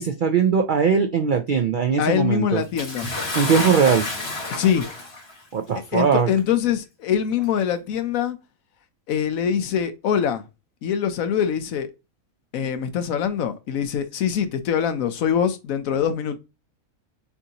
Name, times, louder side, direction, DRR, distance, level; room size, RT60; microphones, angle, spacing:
voice 1, 0.0-2.6 3.3-4.1 5.5-6.3, right 6 dB, 70° right, 0.4 m, -20 dB
voice 2, 2.0-3.1 4.5-4.9 5.9-8.4 9.1-10.4 10.8-11.9 12.5-16.4, left 8 dB, 75° left, 1.1 m, -23 dB
Bathtub (filling or washing) / Splash splatter, 2.8-5.4 6.3-6.4 7.4-7.5, left 2 dB, 50° left, 1.8 m, -29 dB
6.8 x 2.7 x 2.8 m
omnidirectional pair, 1.5 m